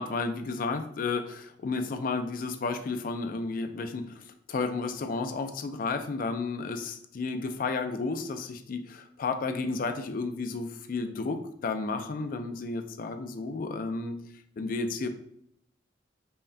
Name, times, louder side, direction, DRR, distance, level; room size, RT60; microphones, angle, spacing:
voice 1, 0.0-14.2 14.6-15.1, left 3 dB, 50° left, 8 dB, 0.4 m, -32 dB
5.5 x 2.2 x 2.6 m, 0.72 s
head